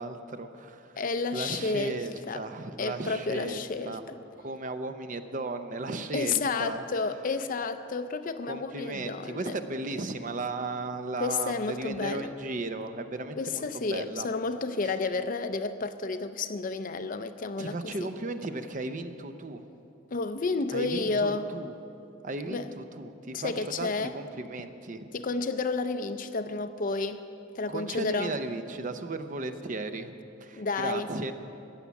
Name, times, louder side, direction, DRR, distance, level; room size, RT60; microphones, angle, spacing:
voice 1, 0.0-1.0 1.3-4.0 4.4-6.8 8.4-14.3 14.8-14.9 17.6-19.6 20.7-21.7 22.2-25.1 27.7-30.1 30.4-31.3, right 2 dB, 40° right, 9 dB, 0.6 m, -35 dB
voice 2, 1.0-2.5 2.8-4.1 6.1-9.6 11.2-12.3 13.4-18.1 20.1-21.5 22.5-22.7 23.3-24.1 25.1-27.2 27.5-28.3 30.6-31.1, left 4 dB, 40° left, 10 dB, 0.5 m, -31 dB
14.5 x 9.6 x 7.1 m, 2.9 s
head